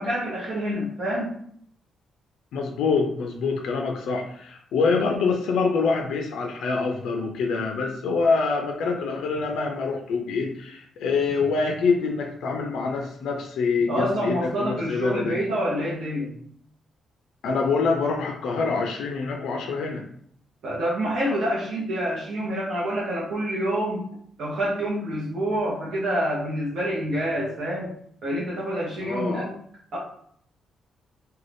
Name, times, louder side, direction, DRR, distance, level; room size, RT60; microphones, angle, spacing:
voice 1, 0.0-1.3 13.9-16.3 20.6-24.0 24.4-27.9 28.2-29.5 29.9-30.0, equal, 55° right, -5 dB, 0.7 m, -27 dB
voice 2, 2.5-15.4 17.4-20.0 29.0-29.5, left 4 dB, 80° left, 2 dB, 0.4 m, -25 dB
2.6 x 2.2 x 3.3 m, 0.64 s
cardioid pair, 160°, 0 cm